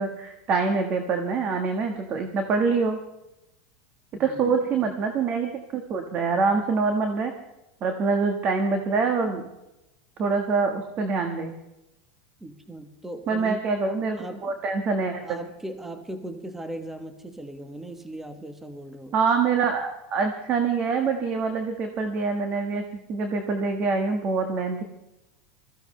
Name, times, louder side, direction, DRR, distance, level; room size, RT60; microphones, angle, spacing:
voice 1, 0.0-3.0 4.2-7.3 7.8-9.4 10.2-11.5 13.3-15.4 19.1-22.8 23.1-24.8, right 4 dB, 40° right, 5 dB, 1.5 m, -25 dB
voice 2, 4.2-4.9 12.4-13.6 14.2-14.6 15.2-19.2, right 1 dB, 5° right, 7 dB, 1.1 m, -38 dB
21.0 x 15.0 x 3.3 m, 0.93 s
supercardioid pair, 125°, 4 cm